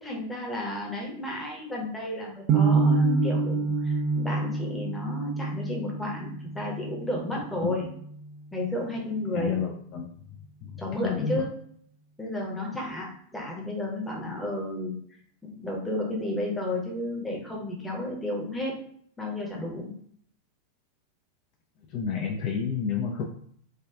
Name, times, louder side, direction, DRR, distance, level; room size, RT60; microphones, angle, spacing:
voice 1, 0.0-7.9 8.5-9.5 10.8-11.5 12.2-14.9 15.4-18.8 19.2-19.9, left 1 dB, 5° left, -2 dB, 0.8 m, -32 dB
sound 1, 2.5-8.6, right 3 dB, 35° right, 0.4 m, -27 dB
voice 2, 9.3-10.1 10.6-11.4 21.9-23.2, left 7 dB, 40° left, 0 dB, 0.3 m, -30 dB
3.4 x 2.3 x 2.3 m, 0.63 s
figure-of-eight pair, 90°, 0 cm